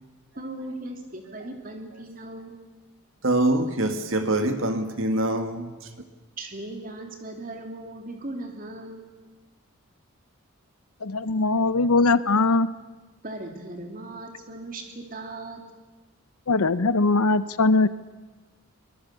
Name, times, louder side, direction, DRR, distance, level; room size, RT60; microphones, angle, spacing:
voice 1, 0.4-2.6 6.4-9.1 13.2-15.6, right 2 dB, 40° right, 3 dB, 2.9 m, -38 dB
voice 2, 3.2-5.7, right 1 dB, 60° right, 7 dB, 2.0 m, -24 dB
voice 3, 11.0-12.7 16.5-17.9, left 3 dB, 90° left, 15 dB, 0.8 m, -21 dB
23.5 x 20.0 x 6.9 m, 1.3 s
head